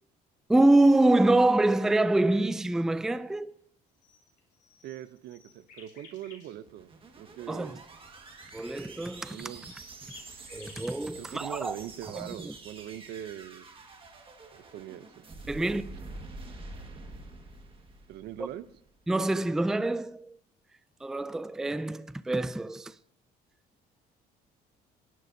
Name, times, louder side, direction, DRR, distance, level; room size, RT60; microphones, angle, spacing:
voice 1, 0.5-3.5 7.5-7.8 8.5-9.4 10.5-11.8 12.1-12.5 15.5-15.9 19.1-20.4 21.0-22.9, right 2 dB, 5° right, 0.3 m, -25 dB
sound 1, 4.0-6.5 9.6-11.1, left 4 dB, 55° left, 4.3 m, -53 dB
voice 2, 4.8-7.8 9.3-9.7 11.2-13.7 14.7-15.1 18.1-18.7, right 12 dB, 75° right, 0.7 m, -41 dB
sound 2, 6.5-18.9, right 3 dB, 30° right, 1.7 m, -47 dB
18.5 x 11.0 x 2.7 m
cardioid pair, 110°, 17 cm